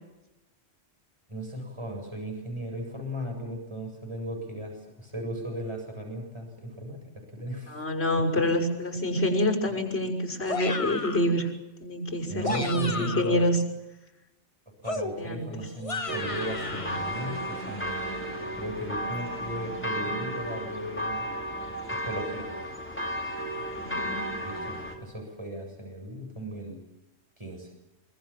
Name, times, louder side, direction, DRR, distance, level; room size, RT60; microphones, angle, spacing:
voice 1, 1.3-7.9 12.3-13.5 14.8-21.3 22.0-22.5 24.4-26.8 27.4-27.7, right 1 dB, 25° right, 2 dB, 7.8 m, -36 dB
voice 2, 7.7-11.5 11.8-13.6 15.2-15.7 23.7-24.4, left 1 dB, 60° left, 2 dB, 6.4 m, -27 dB
sound 1, 10.5-11.3 12.2-13.4 14.8-17.0, left 3 dB, 30° left, 1.2 m, -34 dB
sound 2, 16.1-25.0, equal, 10° left, 4.5 m, -34 dB
25.0 x 25.0 x 7.5 m, 0.95 s
omnidirectional pair, 1.2 m